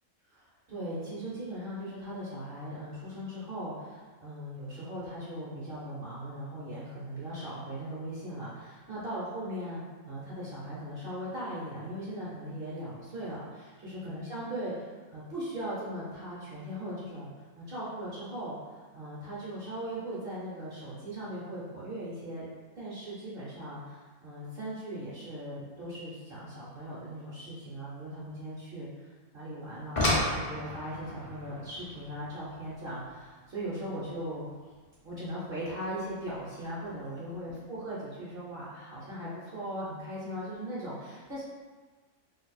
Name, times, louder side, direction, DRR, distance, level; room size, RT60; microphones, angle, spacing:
voice 1, 0.3-17.3 17.5-18.5 18.9-22.4 22.7-34.5 35.0-41.4, right 1 dB, 50° right, -9 dB, 0.8 m, -39 dB
sound 1, 29.6-34.7 36.1-36.2 36.8-37.0 37.3-37.4, left 1 dB, 50° left, 0.4 m, -34 dB
2.6 x 2.4 x 4.0 m, 1.4 s
omnidirectional pair, 1.5 m